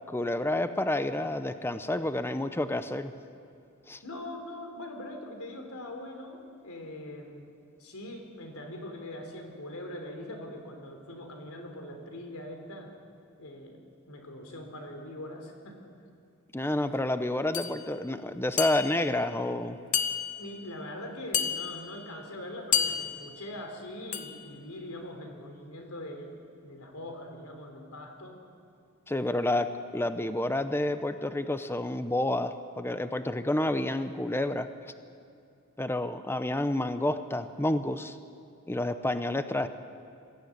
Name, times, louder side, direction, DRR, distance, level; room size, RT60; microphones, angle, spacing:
voice 1, 0.1-3.1 3.9-4.0 16.5-19.8 29.1-34.7 35.8-38.2 38.7-39.7, left 1 dB, 10° left, 10 dB, 0.7 m, -29 dB
voice 2, 4.0-7.5 7.8-12.9 13.4-13.8 14.1-15.8 20.4-28.4, left 1 dB, 90° left, 3 dB, 3.6 m, -42 dB
sound 1, 17.5-17.8 18.6-19.1 19.9-20.6 21.3-22.0 22.7-23.4 24.1-24.5, left 8 dB, 35° left, 1.1 m, -30 dB
22.0 x 15.0 x 9.6 m, 2.5 s
head